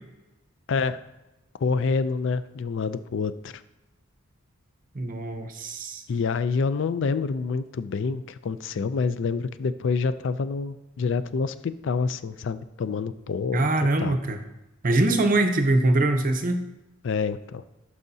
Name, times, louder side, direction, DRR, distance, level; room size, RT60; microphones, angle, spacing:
voice 1, 0.7-1.0 1.6-3.6 6.1-13.7 14.0-14.2 17.0-17.6, left 4 dB, 60° left, 13 dB, 0.4 m, -27 dB
voice 2, 4.9-6.0 13.5-14.4 14.8-16.6, right 2 dB, 40° right, 7 dB, 0.7 m, -23 dB
11.5 x 4.8 x 2.7 m, 0.99 s
head